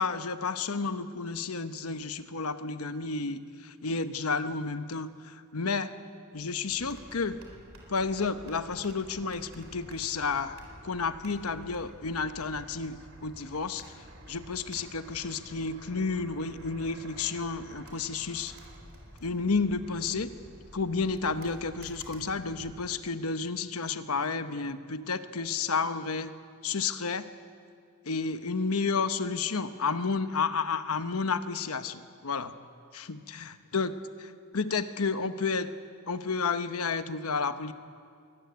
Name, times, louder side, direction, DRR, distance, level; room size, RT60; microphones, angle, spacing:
voice 1, 0.0-5.9 6.3-7.4 7.9-10.6 10.8-13.9 14.3-18.5 19.2-20.3 20.7-26.3 26.6-27.2 28.1-32.5 32.9-33.9 34.2-35.7 36.1-37.7, left 4 dB, 90° left, 10 dB, 1.0 m, -31 dB
sound 1, 6.7-22.9, equal, 65° right, 4.1 m, -50 dB
23.5 x 15.0 x 9.5 m, 2.2 s
head